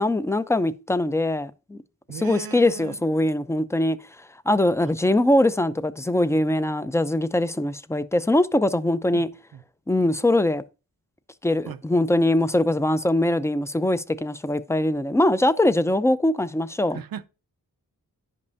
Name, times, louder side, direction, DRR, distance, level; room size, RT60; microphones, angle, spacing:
voice 1, 0.0-1.8 2.1-4.0 4.5-9.3 9.9-10.6 11.4-17.0, left 1 dB, 10° left, 0.4 m, -22 dB
voice 2, 2.1-3.0 4.8-4.9 9.1-9.2 9.5-9.6 11.6-11.8 16.9-17.3, right 8 dB, 80° right, 0.5 m, -37 dB
10.5 x 5.3 x 2.6 m
wide cardioid pair, 65°, 35 cm